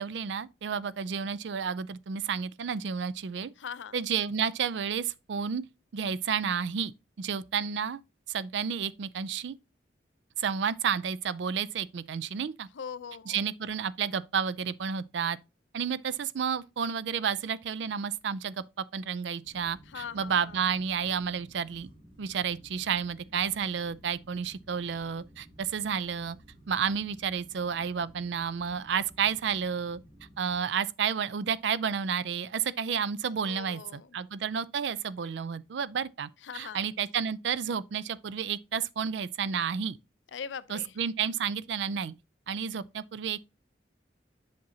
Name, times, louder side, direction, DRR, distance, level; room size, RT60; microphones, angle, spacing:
voice 1, 0.0-3.5 3.9-5.6 5.9-6.9 7.2-8.0 8.3-9.6 10.4-12.7 13.3-15.4 15.7-21.9 22.2-26.4 26.7-30.0 30.4-40.0 40.7-42.1 42.5-43.4, right 7 dB, 75° right, 0.4 m, -31 dB
voice 2, 3.6-4.0 12.7-13.4 19.9-20.6 33.5-34.1 36.4-36.8 40.3-41.0, left 7 dB, 85° left, 0.5 m, -41 dB
sound 1, 19.4-30.6, equal, 30° right, 2.3 m, -55 dB
7.5 x 5.9 x 2.7 m
head